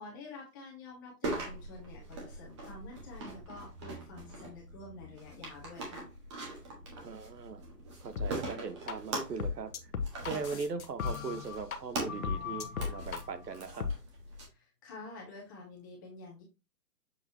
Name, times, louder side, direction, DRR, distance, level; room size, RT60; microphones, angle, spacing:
voice 1, 0.0-6.1 14.5-16.4, left 3 dB, 10° left, 1.1 m, -48 dB
sound 1, 1.2-14.4, right 2 dB, 20° right, 1.4 m, -42 dB
voice 2, 7.0-7.6 8.0-9.9 10.2-13.9, right 5 dB, 80° right, 1.3 m, -39 dB
sound 2, 8.1-8.3 8.9-9.0 9.4-11.8 12.1-13.2 13.8-13.9, left 6 dB, 60° left, 1.1 m, -35 dB
6.9 x 4.9 x 2.8 m
hypercardioid pair, 170°, 49 cm